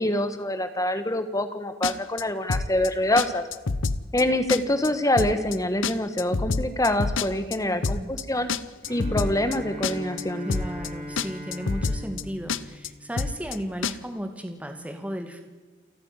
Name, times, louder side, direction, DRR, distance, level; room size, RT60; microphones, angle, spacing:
voice 1, 0.0-3.4 4.1-8.5 8.9-10.5, left 1 dB, 15° left, 10 dB, 1.3 m, -25 dB
sound 1, 1.8-2.2 2.5-2.9 3.2-3.3 3.5-4.2 4.5-4.9 5.2-5.6 5.8-7.6 7.8-8.2 8.5-9.6 9.8-10.2 10.5-10.9 11.2-11.3 11.5-12.2 12.5-12.9 13.2-13.6 13.8-13.9, left 4 dB, 75° left, 0.8 m, -27 dB
voice 2, 7.7-8.1 10.4-15.4, equal, 5° right, 5 dB, 2.1 m, -35 dB
Bowed string instrument, 8.8-13.8, equal, 40° right, 4.7 m, -40 dB
28.5 x 9.6 x 9.7 m, 1.3 s
head